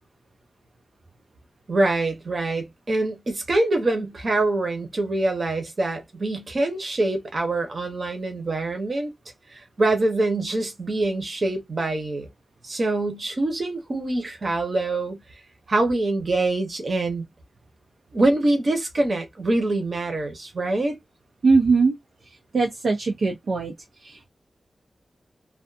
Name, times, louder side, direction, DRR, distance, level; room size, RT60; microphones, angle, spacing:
voice 1, 1.7-9.1 9.5-12.3 12.6-15.2 15.7-17.3 18.1-21.0, right 2 dB, 45° right, 0.9 m, -24 dB
voice 2, 21.4-22.0 22.3-23.7 24.0-24.3, right 4 dB, 65° right, 0.5 m, -21 dB
2.4 x 2.3 x 2.5 m
wide cardioid pair, 135°, 0 cm